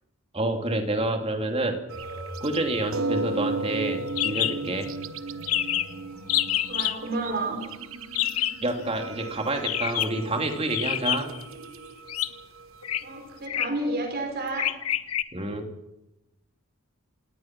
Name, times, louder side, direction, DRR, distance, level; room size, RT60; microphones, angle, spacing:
voice 1, 0.3-1.8 2.4-4.9 8.6-11.3 15.3-15.6, right 2 dB, 25° right, 4 dB, 2.9 m, -28 dB
voice 2, 1.9-2.4 6.7-7.6 13.0-14.7, right 2 dB, 45° right, 3 dB, 4.9 m, -31 dB
sound 1, 1.9-13.5, right 3 dB, 65° right, 1.1 m, -36 dB
sound 2, 1.9-11.9, right 1 dB, 90° right, 6.6 m, -47 dB
sound 3, 4.2-4.5 4.8-4.9 5.1-5.2 5.5-5.9 6.3-7.0 8.1-8.6 9.6-10.2 10.7-11.4 12.1-12.3 12.8-13.0 13.5-13.8 14.6-15.2, left 12 dB, 90° left, 1.3 m, -26 dB
27.5 x 18.5 x 6.2 m, 0.89 s
head